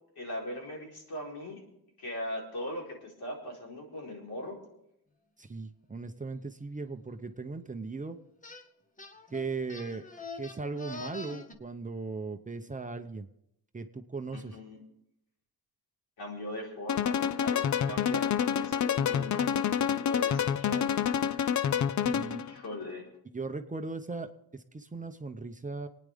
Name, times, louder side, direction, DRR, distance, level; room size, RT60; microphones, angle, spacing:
voice 1, 0.2-1.6 2.0-4.6 14.3-14.8 16.2-19.7 20.0-20.9 22.4-23.1, left 1 dB, 80° left, -2 dB, 4.3 m, -39 dB
voice 2, 5.4-8.2 9.3-10.0 10.4-13.3 13.7-14.5 22.0-22.4 23.3-25.9, right 3 dB, 20° right, 7 dB, 0.7 m, -38 dB
sound 1, 8.4-8.6 9.0-11.5, left 3 dB, 20° left, 1.1 m, -44 dB
sound 2, 16.9-22.5, left 8 dB, 50° left, 0.6 m, -28 dB
28.0 x 9.6 x 3.5 m, 0.79 s
wide cardioid pair, 130°, 37 cm